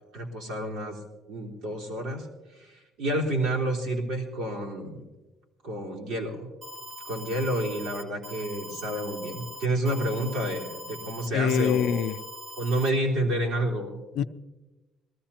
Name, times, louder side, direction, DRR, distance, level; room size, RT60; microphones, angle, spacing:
voice 1, 0.1-1.0 1.3-2.3 2.5-5.1 5.6-6.5 7.0-12.0 12.6-14.0, right 1 dB, 85° right, 3.7 m, -29 dB
Alarm, 6.6-12.9, equal, 35° right, 1.7 m, -42 dB
voice 2, 11.3-12.2 14.2-14.3, left 8 dB, 75° left, 0.5 m, -24 dB
23.5 x 14.5 x 2.9 m
cardioid pair, 150°, 0 cm